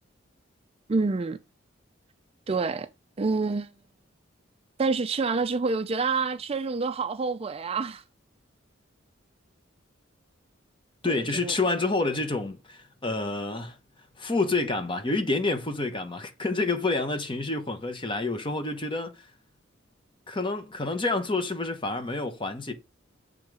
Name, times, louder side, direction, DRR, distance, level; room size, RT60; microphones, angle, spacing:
voice 1, 0.9-1.4 2.5-2.9 3.2-3.7 4.8-8.0 11.1-11.5, right 4 dB, 30° right, 0.4 m, -27 dB
voice 2, 11.0-13.8 14.2-19.3 20.3-22.7, left 3 dB, 25° left, 1.0 m, -28 dB
7.2 x 3.8 x 4.7 m
head